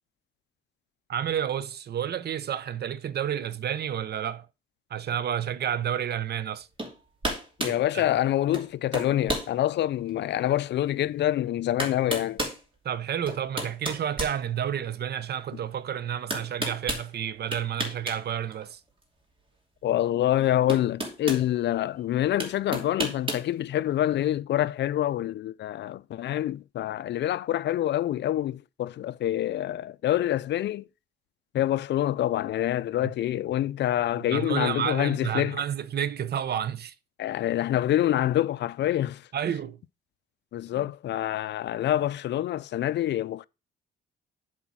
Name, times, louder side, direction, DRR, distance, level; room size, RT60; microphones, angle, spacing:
voice 1, 1.1-4.5 4.9-6.7 7.7-8.0 12.8-18.8 34.3-36.9 39.3-39.8 40.7-40.9, right 9 dB, 55° right, 0.8 m, -30 dB
sound 1, 6.8-6.9 7.2-7.8 8.5-8.7 8.9-9.5 10.1-10.2 11.3-11.4 11.8-12.6 13.3-14.9 16.3-17.1 17.5-18.2 18.5-18.6 20.0-20.1 20.7-21.4 22.4-23.5, right 1 dB, 25° right, 2.7 m, -31 dB
voice 2, 7.6-12.4 19.8-30.9 31.5-35.6 37.2-39.2 40.5-43.4, left 12 dB, 60° left, 0.5 m, -26 dB
8.3 x 4.2 x 6.1 m
cardioid pair, 90°, 20 cm